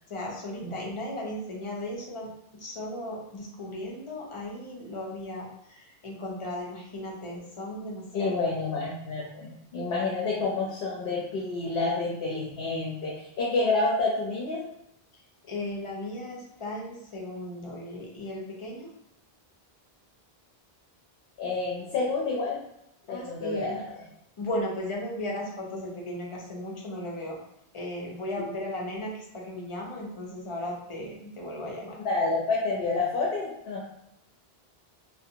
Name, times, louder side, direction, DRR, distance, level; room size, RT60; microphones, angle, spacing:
voice 1, 0.1-8.4 15.1-18.9 23.1-23.8 24.4-27.4 27.7-32.0, left 1 dB, 40° left, -2 dB, 0.5 m, -36 dB
voice 2, 8.1-14.6 21.4-22.6 23.1-24.0 32.0-33.9, left 3 dB, 70° left, -4 dB, 0.8 m, -29 dB
2.5 x 2.1 x 2.7 m, 0.79 s
omnidirectional pair, 1.0 m